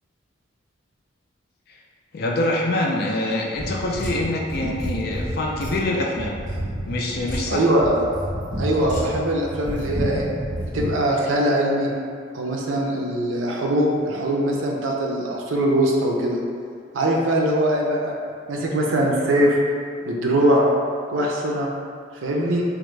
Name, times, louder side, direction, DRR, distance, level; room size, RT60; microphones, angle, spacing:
voice 1, 2.1-6.3 6.9-7.7, left 1 dB, 50° left, -1 dB, 0.4 m, -25 dB
sound 1, 3.5-10.9, right 1 dB, 20° right, 1.4 m, -29 dB
voice 2, 7.5-7.9 8.6-10.3 10.7-11.9 12.3-16.4 16.9-18.1 18.5-19.6 20.0-20.7 21.1-21.7 22.2-22.6, right 1 dB, 80° right, -1 dB, 0.5 m, -21 dB
3.4 x 2.0 x 3.1 m, 2.2 s
head